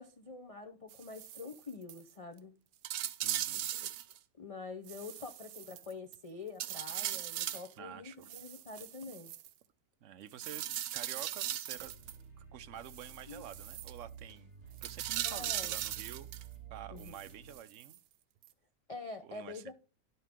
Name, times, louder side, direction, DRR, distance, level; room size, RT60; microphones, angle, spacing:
voice 1, 0.0-2.5 3.7-3.9 4.4-9.3 13.3-13.4 15.2-15.7 16.9-17.1 18.9-19.7, left 4 dB, 40° left, 0.5 m, -46 dB
sound 1, 0.9-1.6 1.9-2.0 2.4-2.5 2.8-4.2 4.9-6.2 6.6-7.7 8.2-9.5 10.4-12.2 12.9-13.9 14.8-16.5 17.0-18.0 18.4-18.5, right 12 dB, 85° right, 1.1 m, -39 dB
voice 2, 3.2-3.7 7.8-8.3 10.0-11.9 12.4-14.5 14.8-16.4 16.7-18.0 19.2-19.6, right 10 dB, 65° right, 0.9 m, -49 dB
sound 2, 11.8-17.6, right 8 dB, 45° right, 3.4 m, -51 dB
11.5 x 5.5 x 3.6 m
omnidirectional pair, 1.6 m